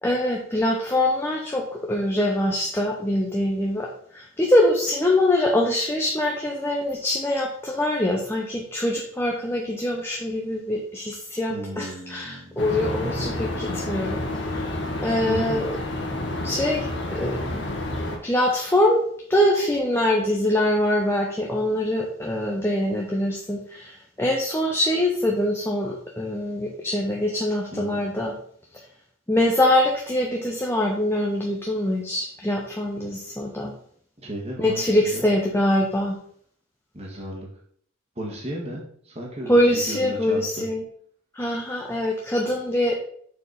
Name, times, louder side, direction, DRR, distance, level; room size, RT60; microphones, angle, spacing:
voice 1, 0.0-14.2 14.5-14.7 15.0-15.7 16.4-17.6 18.2-19.0 19.3-28.3 29.3-33.7 34.6-36.2 39.5-40.8 41.3-42.9, left 1 dB, 10° left, -1 dB, 0.8 m, -23 dB
voice 2, 11.5-12.6 15.2-15.6 27.7-28.0 34.2-35.2 36.9-37.5 38.1-40.6, right 1 dB, 30° right, -2 dB, 1.6 m, -34 dB
sound 1, 12.6-18.2, left 1 dB, 55° left, 1.6 m, -29 dB
6.6 x 4.4 x 5.5 m, 0.62 s
head